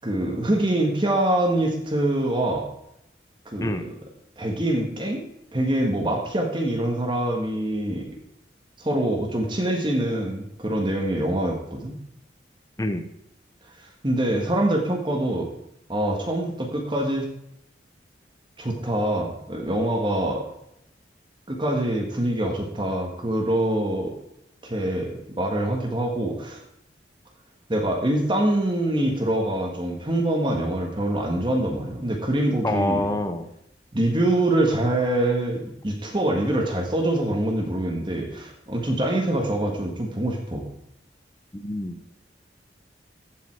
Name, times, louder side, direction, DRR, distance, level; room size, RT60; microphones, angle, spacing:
voice 1, 0.0-2.6 3.4-3.8 4.4-5.2 5.5-8.1 8.8-11.9 14.0-15.5 15.9-17.3 18.6-20.4 21.5-24.1 24.6-26.6 27.7-33.1 33.9-40.6, right 1 dB, 25° right, 1 dB, 1.6 m, -24 dB
voice 2, 32.6-33.5 41.5-42.0, left 1 dB, 20° left, 6 dB, 0.7 m, -26 dB
15.0 x 5.5 x 4.6 m, 0.79 s
head